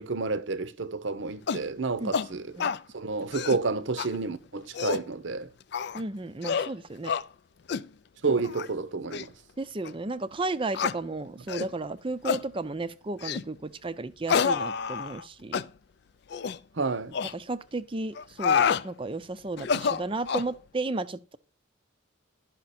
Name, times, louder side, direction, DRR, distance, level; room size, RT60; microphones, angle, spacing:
voice 1, 0.0-2.4 2.9-5.5 8.2-9.3 16.8-17.1, right 3 dB, 65° right, 0.8 m, -30 dB
sound 1, 1.5-1.7 2.1-2.3 2.6-2.8 3.2-3.6 4.0-4.1 4.6-5.1 5.7-6.0 6.4-6.7 7.0-7.2 7.7-7.9 8.4-8.7 9.1-9.2 9.8-9.9 10.7-11.0 11.5-11.7 12.2-12.4 13.2-13.5 14.3-15.2 15.5-15.7 16.3-16.6 17.1-17.3 18.1-18.8 19.6-20.5, left 6 dB, 55° left, 0.4 m, -28 dB
voice 2, 5.9-7.1 9.6-15.7 17.3-21.4, right 2 dB, 25° right, 0.5 m, -33 dB
11.5 x 5.8 x 4.2 m
head